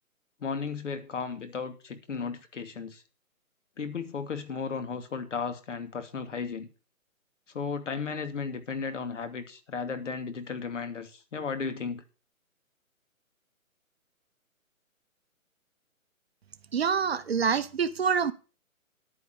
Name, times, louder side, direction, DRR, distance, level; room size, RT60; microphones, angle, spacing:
voice 1, 0.4-3.0 3.8-6.7 7.5-12.0, left 5 dB, 60° left, 2.7 m, -35 dB
voice 2, 16.7-18.3, right 6 dB, 45° right, 1.0 m, -26 dB
11.0 x 9.5 x 7.1 m
hypercardioid pair, 160°, 42 cm